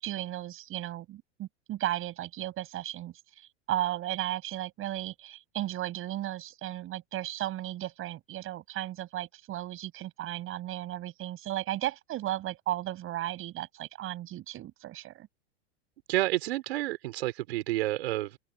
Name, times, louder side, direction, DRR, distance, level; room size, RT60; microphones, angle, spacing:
voice 1, 0.0-3.1 3.7-15.3, right 14 dB, 40° right, 7.7 m, -35 dB
voice 2, 16.1-18.4, right 16 dB, 70° right, 4.7 m, -30 dB
open air
hypercardioid pair, 105°, 33 cm